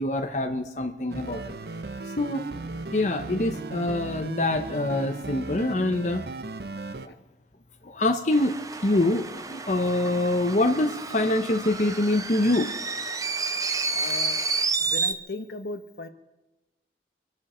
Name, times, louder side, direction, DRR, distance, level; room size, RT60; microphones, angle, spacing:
voice 1, 0.0-1.5 2.2-2.5 2.9-6.2 7.0-7.1 7.8-12.8, left 1 dB, 45° left, 4 dB, 0.9 m, -25 dB
sound 1, 1.1-7.1, right 3 dB, 60° right, 0.7 m, -36 dB
sound 2, 8.3-15.1, right 4 dB, 20° right, 0.6 m, -30 dB
voice 2, 13.9-14.4 14.8-16.1, left 2 dB, 65° left, 8 dB, 1.2 m, -37 dB
27.5 x 12.0 x 4.4 m, 1.0 s
head